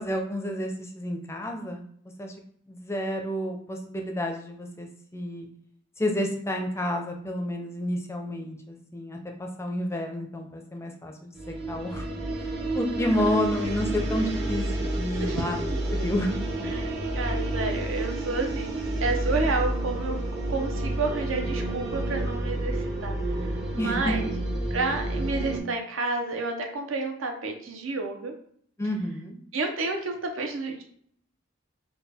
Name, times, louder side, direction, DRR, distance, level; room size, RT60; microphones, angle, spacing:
voice 1, 0.0-1.8 2.2-2.3 2.7-5.5 6.0-12.1 12.7-16.3 16.6-16.7 23.8-24.2 28.8-29.4, left 1 dB, 15° left, 3 dB, 0.4 m, -30 dB
sound 1, 11.3-25.6, right 1 dB, 55° right, 0.8 m, -30 dB
voice 2, 13.0-13.3 15.1-15.8 16.6-16.9 17.1-20.2 20.5-23.2 23.7-24.3 24.7-28.3 29.5-30.8, right 3 dB, 85° right, 3 dB, 0.7 m, -30 dB
4.4 x 2.3 x 3.4 m, 0.64 s
head